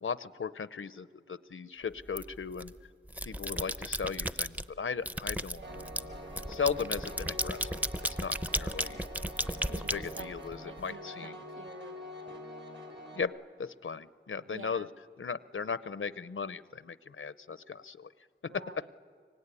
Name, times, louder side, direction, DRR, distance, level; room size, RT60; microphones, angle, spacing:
voice 1, 0.0-2.7 3.2-5.6 6.5-7.7 8.2-9.1 9.7-11.4 13.1-14.9 15.2-18.1 18.5-18.6, left 6 dB, 80° left, 16 dB, 0.7 m, -37 dB
sound 1, 2.1-2.7 3.1-4.7 5.1-10.8, equal, 5° right, 0.6 m, -34 dB
voice 2, 5.5-5.9 9.7-12.0 14.5-14.9 18.5-18.9, right 3 dB, 75° right, 8 dB, 0.8 m, -49 dB
Piano, 5.6-13.2, equal, 60° right, 3.6 m, -45 dB
25.0 x 23.5 x 9.8 m, 2.1 s
wide cardioid pair, 55°, 21 cm